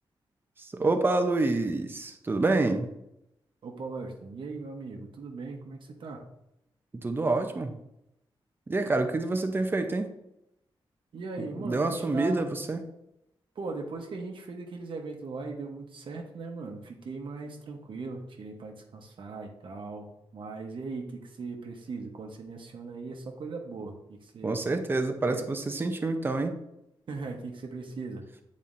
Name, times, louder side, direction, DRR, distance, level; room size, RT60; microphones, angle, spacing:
voice 1, 0.6-2.9 7.0-7.7 8.7-10.1 11.6-12.8 24.4-26.6, right 2 dB, 25° right, 6 dB, 0.6 m, -27 dB
voice 2, 3.6-6.2 11.1-12.5 13.5-20.1 20.3-24.6 25.3-25.4 27.1-28.2, right 3 dB, 65° right, 2 dB, 0.9 m, -39 dB
8.9 x 4.2 x 2.5 m, 0.83 s
wide cardioid pair, 160°, 9 cm